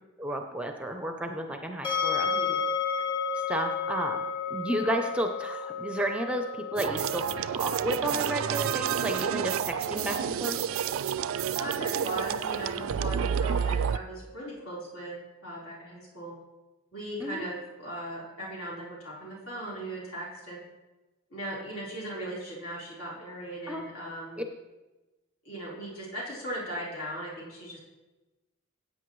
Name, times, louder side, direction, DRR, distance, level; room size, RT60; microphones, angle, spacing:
voice 1, 0.2-2.3 3.3-4.2 4.5-10.6 17.2-17.4 23.7-23.8 24.4-24.5, right 1 dB, 5° right, 5 dB, 0.6 m, -32 dB
sound 1, 1.8-14.8, left 5 dB, 25° left, 1.6 m, -35 dB
voice 2, 2.3-2.6 11.6-16.3 16.9-20.6 21.3-24.4 25.4-27.8, right 1 dB, 70° left, -6 dB, 4.1 m, -38 dB
sound 2, 6.8-14.0, right 8 dB, 70° right, 0.3 m, -29 dB
15.5 x 8.4 x 3.1 m, 1.1 s
head